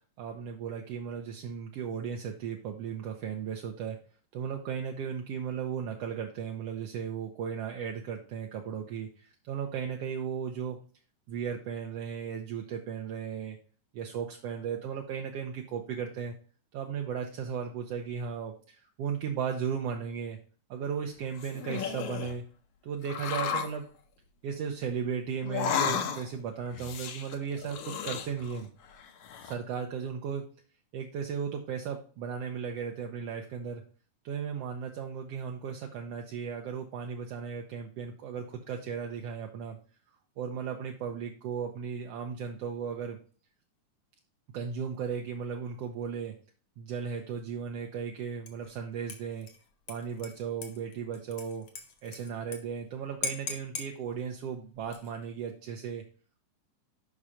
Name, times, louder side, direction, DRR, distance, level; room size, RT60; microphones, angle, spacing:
voice 1, 0.2-4.0 4.3-10.8 11.3-13.6 13.9-16.3 16.7-20.4 20.7-22.4 22.8-23.8 24.4-28.7 29.4-30.4 30.9-33.8 34.2-39.8 40.4-43.2 44.5-46.3 46.8-49.5 49.9-51.7 52.0-56.0, right 7 dB, 75° right, 2 dB, 1.5 m, -36 dB
sound 1, 21.2-22.4 23.0-23.8 25.4-26.4 26.7-28.7 29.0-29.5, left 7 dB, 75° left, 2.2 m, -33 dB
Dishes pots and pans / Liquid, 48.5-48.8 49.1-52.6 52.9-53.0 53.2-53.9 54.8-55.3, left 5 dB, 55° left, 1.8 m, -40 dB
6.1 x 5.5 x 4.9 m, 0.41 s
omnidirectional pair, 3.5 m